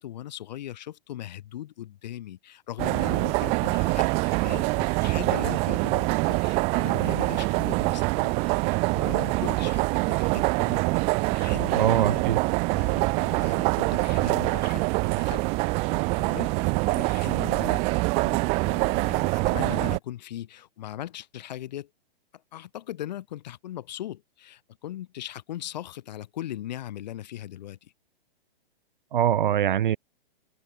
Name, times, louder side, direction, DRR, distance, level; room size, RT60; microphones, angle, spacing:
voice 1, 0.0-10.8 11.3-12.2 12.7-15.4 15.8-21.9 22.3-27.9, left 12 dB, 45° left, 5.3 m, -39 dB
sound 1, 2.8-20.0, right 29 dB, 20° right, 1.6 m, -25 dB
voice 2, 11.8-12.4 29.1-30.0, right 10 dB, 50° right, 0.7 m, -22 dB
open air
hypercardioid pair, 170°, 31 cm